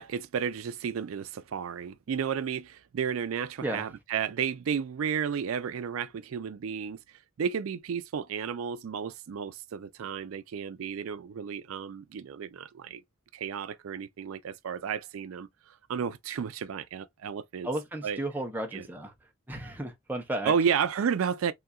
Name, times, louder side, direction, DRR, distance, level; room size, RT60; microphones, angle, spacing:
voice 1, 0.0-7.0 7.4-13.0 13.3-17.7 18.0-18.2 18.7-18.8 20.5-21.5, right 7 dB, 90° right, 0.4 m, -32 dB
voice 2, 17.6-19.1 19.5-20.5, right 1 dB, 10° right, 0.8 m, -33 dB
3.9 x 2.7 x 2.3 m
head